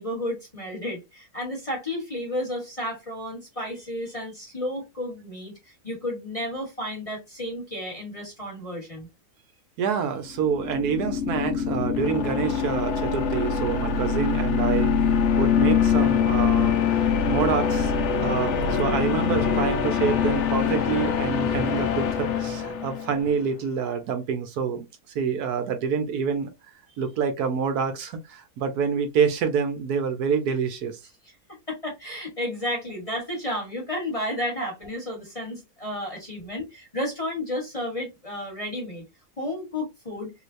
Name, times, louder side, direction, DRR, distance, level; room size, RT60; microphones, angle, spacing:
voice 1, 0.0-9.1 31.7-39.0 39.4-40.3, left 1 dB, 25° left, 1.0 m, -32 dB
voice 2, 9.8-15.0 15.4-26.5 27.0-31.0, right 6 dB, 70° right, 1.2 m, -27 dB
sound 1, 10.3-23.3, left 7 dB, 60° left, 0.8 m, -24 dB
3.2 x 3.1 x 2.5 m
omnidirectional pair, 1.8 m